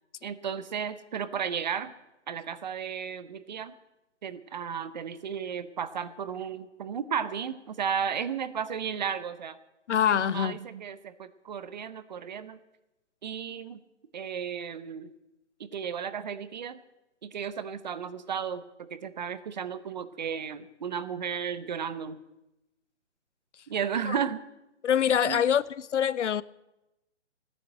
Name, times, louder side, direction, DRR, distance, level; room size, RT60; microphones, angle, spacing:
voice 1, 0.2-1.9 2.3-3.7 4.2-9.6 10.1-12.6 13.2-13.8 14.1-15.1 15.6-16.8 17.2-22.2 23.7-24.4 25.2-25.5, right 7 dB, 40° right, 0.7 m, -34 dB
voice 2, 9.9-10.6 24.1-24.2 24.8-26.4, left 9 dB, 80° left, 0.6 m, -25 dB
14.0 x 9.8 x 7.7 m
hypercardioid pair, 155°, 35 cm